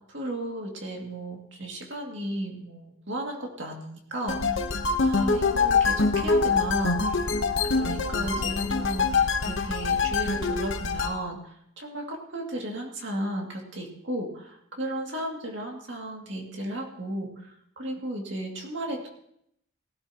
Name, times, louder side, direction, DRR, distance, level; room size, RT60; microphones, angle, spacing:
voice 1, 0.1-4.7 5.0-7.3 7.6-19.1, right 1 dB, 55° right, 1 dB, 2.3 m, -34 dB
sound 1, 4.3-11.1, left 4 dB, 60° left, 1.0 m, -25 dB
18.0 x 12.0 x 2.9 m, 0.73 s
head